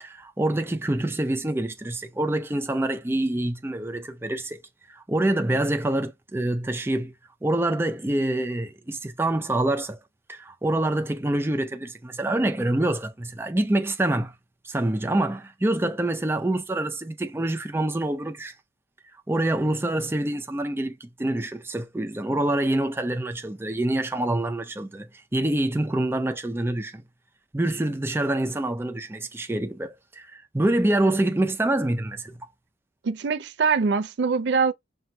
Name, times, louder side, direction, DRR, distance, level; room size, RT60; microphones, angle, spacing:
voice 1, 0.0-4.6 4.9-7.1 7.4-10.0 10.3-14.3 14.6-18.5 19.3-27.0 27.5-32.5, right 1 dB, 15° right, 0.4 m, -26 dB
voice 2, 33.0-34.7, right 5 dB, 70° right, 0.4 m, -23 dB
5.8 x 2.1 x 2.6 m
head